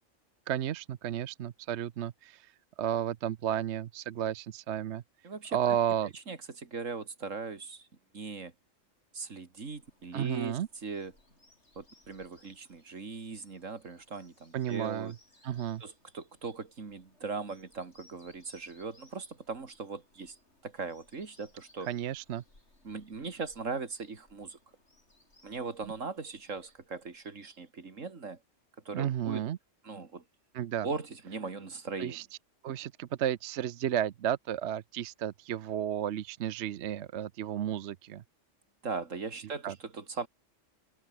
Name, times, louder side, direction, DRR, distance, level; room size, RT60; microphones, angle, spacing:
voice 1, 0.5-2.5 2.8-5.0 5.5-6.1 10.1-10.7 14.5-15.1 15.4-15.8 21.9-22.4 25.8-25.9 28.9-29.6 30.5-30.9 32.0-32.2 32.6-38.2 39.6-39.7, right 10 dB, 65° right, 1.0 m, -32 dB
voice 2, 5.2-5.8 6.3-7.9 8.1-8.5 9.1-11.1 11.8-15.1 15.8-20.4 20.6-21.9 22.8-24.6 25.4-28.4 28.8-29.4 29.8-30.2 30.8-32.2 38.8-40.3, right 4 dB, 90° right, 2.8 m, -39 dB
Bird vocalization bird call bird song, 9.5-27.5, left 2 dB, 60° left, 6.1 m, -65 dB
omnidirectional pair, 1.3 m